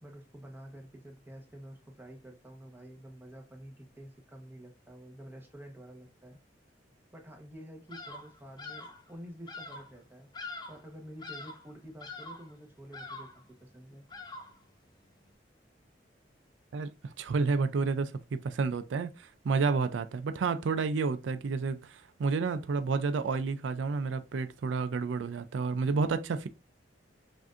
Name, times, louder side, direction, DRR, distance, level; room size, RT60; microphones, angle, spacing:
voice 1, 0.0-6.4 7.1-14.1, equal, 10° right, 1.0 m, -49 dB
Bird vocalization bird call bird song, 7.9-8.3 8.6-9.0 9.5-9.9 10.3-10.9 11.2-11.7 12.0-12.5 12.9-13.4 14.1-14.6, left 3 dB, 25° left, 0.7 m, -44 dB
voice 2, 16.7-26.5, right 4 dB, 90° right, 0.4 m, -30 dB
5.9 x 2.6 x 2.5 m
head